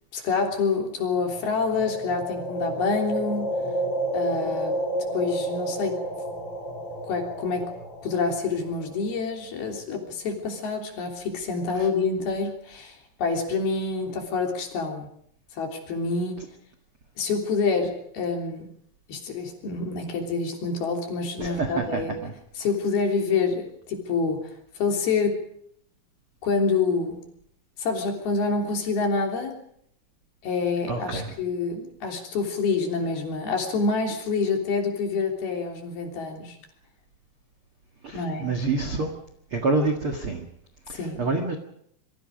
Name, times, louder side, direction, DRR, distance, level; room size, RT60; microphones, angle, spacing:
voice 1, 0.1-3.5 4.1-4.8 5.1-6.0 7.0-7.7 8.0-15.1 15.5-16.5 17.2-18.7 19.1-22.1 22.6-24.5 24.7-25.4 26.4-27.2 27.8-29.6 30.4-36.6 38.1-38.5 40.9-41.2, left 4 dB, 55° left, 2 dB, 4.9 m, -27 dB
sound 1, 1.2-9.2, right 1 dB, 30° left, 3.6 m, -31 dB
voice 2, 21.4-22.3 30.9-31.3 38.0-39.2 39.5-40.4 40.9-41.6, right 3 dB, 75° right, 4 dB, 1.2 m, -27 dB
27.0 x 23.5 x 5.2 m, 0.69 s
omnidirectional pair, 5.7 m